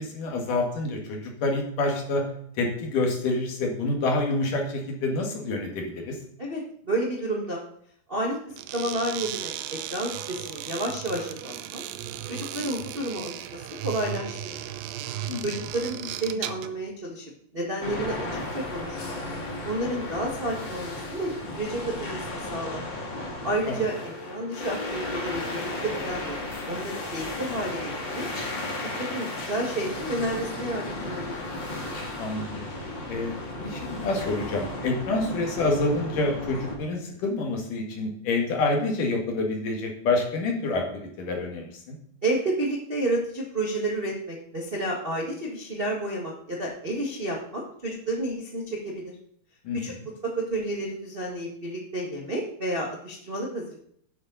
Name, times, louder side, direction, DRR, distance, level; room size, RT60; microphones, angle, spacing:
voice 1, 0.0-2.3 2.5-6.2 15.3-15.4 23.7-23.8 32.2-32.7 33.1-42.0 49.6-50.1, left 2 dB, 65° left, 2 dB, 3.2 m, -27 dB
voice 2, 6.4-7.6 8.1-11.8 12.3-14.6 15.4-17.2 17.5-19.2 19.6-22.8 23.4-23.9 24.3-26.4 26.7-28.3 29.0-31.3 42.2-49.1 49.7-49.9 50.2-53.7, right 1 dB, 65° right, -2 dB, 0.5 m, -31 dB
sound 1, 8.5-16.8, right 11 dB, 80° right, 2.5 m, -36 dB
sound 2, 17.8-36.8, left 2 dB, 35° left, 2.3 m, -34 dB
11.5 x 9.0 x 4.0 m, 0.67 s
omnidirectional pair, 4.1 m